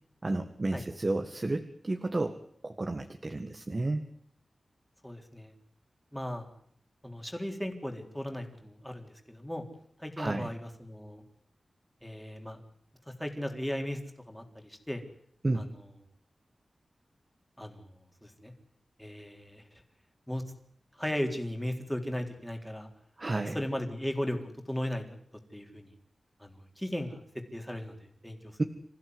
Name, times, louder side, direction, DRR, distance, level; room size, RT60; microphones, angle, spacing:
voice 1, 0.2-2.4 2.6-4.1 10.2-10.5 15.4-15.7 23.2-23.6 28.6-28.7, right 2 dB, 30° right, 5 dB, 1.8 m, -31 dB
voice 2, 5.0-5.5 6.1-6.5 7.0-9.6 10.0-11.2 12.0-12.6 13.1-14.0 14.3-15.0 15.5-15.6 17.6-17.9 18.2-18.5 19.0-19.6 20.3-20.4 21.0-22.9 23.3-24.4 24.7-25.0 25.5-25.9 26.4-27.2 27.5-28.6, left 1 dB, 5° left, 3 dB, 3.9 m, -36 dB
27.0 x 15.5 x 9.7 m, 0.69 s
wide cardioid pair, 105°, 0 cm